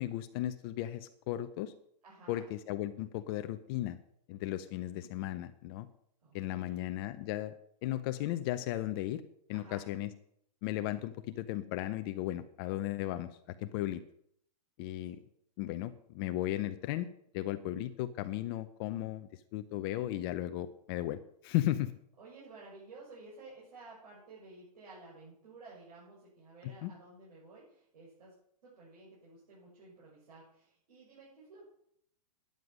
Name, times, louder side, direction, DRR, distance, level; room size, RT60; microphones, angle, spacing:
voice 1, 0.0-1.7 2.3-4.0 4.3-5.9 6.3-7.5 7.8-9.2 9.5-10.1 10.6-13.3 13.6-14.0 14.8-15.2 15.6-17.1 17.3-21.9 26.6-26.9, left 14 dB, 35° left, 10 dB, 0.7 m, -35 dB
voice 2, 2.0-2.5 6.2-6.9 9.5-9.9 15.1-15.2 22.2-28.3 28.6-31.7, right 3 dB, 75° right, -7 dB, 6.7 m, -53 dB
10.5 x 9.6 x 6.2 m, 0.68 s
hypercardioid pair, 145°, 21 cm